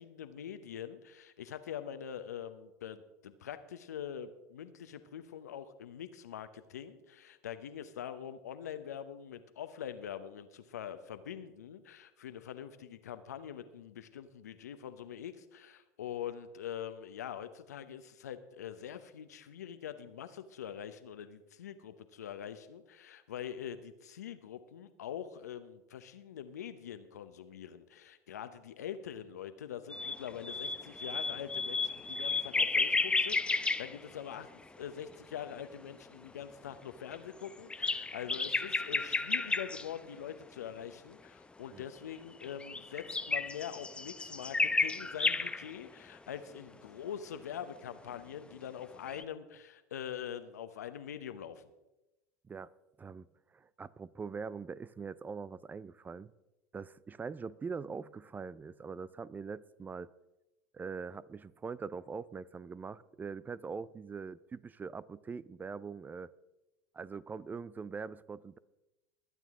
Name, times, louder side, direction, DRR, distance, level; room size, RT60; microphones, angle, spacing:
voice 1, 0.0-51.7, left 9 dB, 85° left, 11 dB, 0.9 m, -44 dB
sound 1, 29.9-34.7 35.0-35.5 36.2-36.3 37.1-39.9 42.2-45.8 49.1-49.2, left 3 dB, 10° left, 0.7 m, -33 dB
voice 2, 53.5-56.3 56.7-60.1 60.7-66.3 66.9-68.6, right 5 dB, 20° right, 20 dB, 0.4 m, -42 dB
21.0 x 9.2 x 3.7 m, 0.98 s
hypercardioid pair, 85°, 9 cm